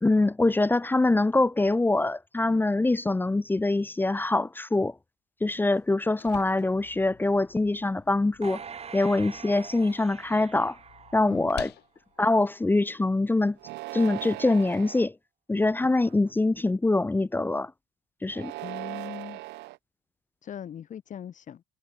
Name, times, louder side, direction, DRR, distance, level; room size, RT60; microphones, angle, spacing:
voice 1, 0.0-4.9 5.4-8.6 8.9-10.8 11.1-11.7 12.2-13.6 13.9-15.1 15.5-17.7 18.2-18.5, left 2 dB, 10° left, 0.7 m, -24 dB
sound 1, 5.8-13.7, left 15 dB, 75° left, 7.5 m, -49 dB
sound 2, 8.4-11.9 12.3-12.4, right 6 dB, 40° right, 5.7 m, -44 dB
sound 3, 13.6-15.1 15.8-16.3 18.3-19.8, right 20 dB, 85° right, 1.4 m, -39 dB
voice 2, 18.6-19.4 20.4-21.6, left 9 dB, 50° left, 2.3 m, -40 dB
cardioid pair, 110°, 17 cm